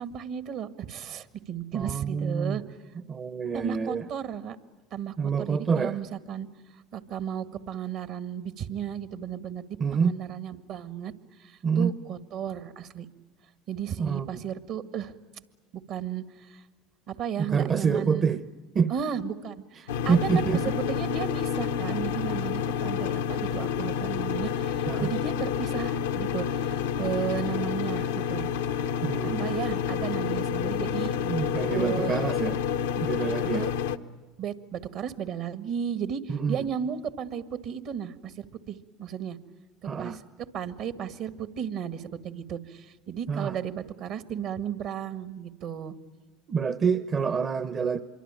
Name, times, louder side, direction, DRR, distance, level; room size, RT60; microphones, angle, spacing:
voice 1, 0.0-2.6 3.5-4.6 4.9-6.5 6.9-9.6 9.9-11.1 11.4-13.0 13.7-15.1 15.9-16.6 17.1-18.4 18.9-20.5 20.9-28.5 29.2-31.2 31.7-32.3 33.2-33.7 34.4-39.4 40.0-40.2 40.5-45.9, right 8 dB, 60° right, 1.8 m, -34 dB
voice 2, 1.7-2.6 3.1-4.1 5.2-6.0 9.8-10.2 11.6-11.9 14.0-14.4 17.4-18.4 18.7-18.9 20.1-20.6 24.9-25.1 29.0-29.4 31.3-32.6 32.9-33.7 36.3-36.6 39.8-40.2 43.3-43.6 46.5-48.0, right 6 dB, 35° right, 1.0 m, -27 dB
sound 1, 19.9-34.0, left 8 dB, 85° left, 0.9 m, -29 dB
26.0 x 23.5 x 9.0 m
hypercardioid pair, 75°, 0 cm